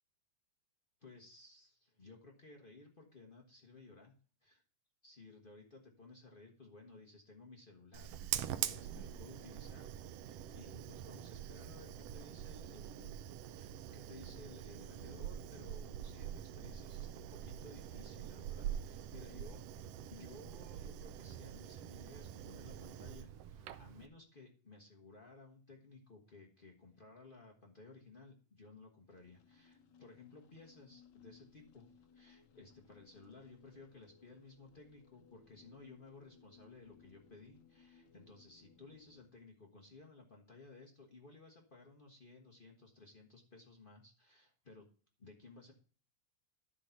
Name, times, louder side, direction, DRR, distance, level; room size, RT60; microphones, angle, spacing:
voice 1, 1.0-4.1 4.4-4.6 5.0-19.7 20.1-44.9 45.2-45.7, left 3 dB, 85° left, 0 dB, 0.4 m, -57 dB
Fire, 7.9-24.1, right 11 dB, 75° right, 1.4 m, -45 dB
sound 1, 29.1-39.3, left 6 dB, 65° left, 1.2 m, -65 dB
12.0 x 4.0 x 5.7 m, 0.40 s
omnidirectional pair, 3.4 m